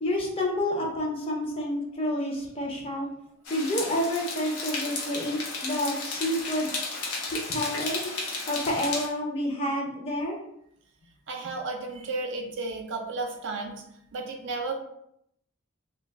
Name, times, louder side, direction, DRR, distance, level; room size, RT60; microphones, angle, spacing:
voice 1, 0.0-3.1 3.5-6.7 7.3-8.1 8.5-10.4, left 1 dB, 25° left, -1 dB, 0.5 m, -29 dB
sound 1, 3.5-9.1, left 3 dB, 90° left, 0.7 m, -34 dB
voice 2, 11.3-13.8 14.1-14.7, right 3 dB, 55° right, 2 dB, 0.5 m, -33 dB
2.3 x 2.2 x 3.3 m, 0.74 s
head